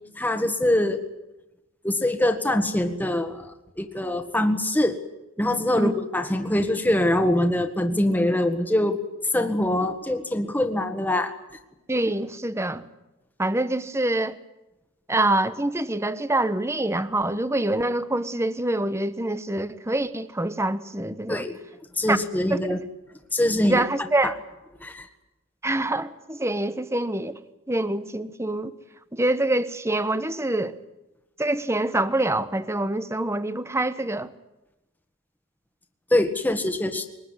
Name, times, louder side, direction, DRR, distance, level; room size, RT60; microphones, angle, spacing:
voice 1, 0.2-1.0 1.8-5.0 5.4-9.0 9.3-11.3 21.3-21.5 22.0-22.8 23.3-23.8 24.2-24.3 24.8-25.1 36.1-37.1, left 1 dB, 10° left, 1.6 m, -23 dB
voice 2, 11.9-12.8 13.4-14.4 15.1-21.4 22.1-22.2 22.5-22.8 23.6-24.3 25.6-27.4 27.7-28.7 29.1-30.8 31.4-34.3, right 1 dB, 15° right, 0.9 m, -25 dB
22.5 x 20.0 x 9.8 m
head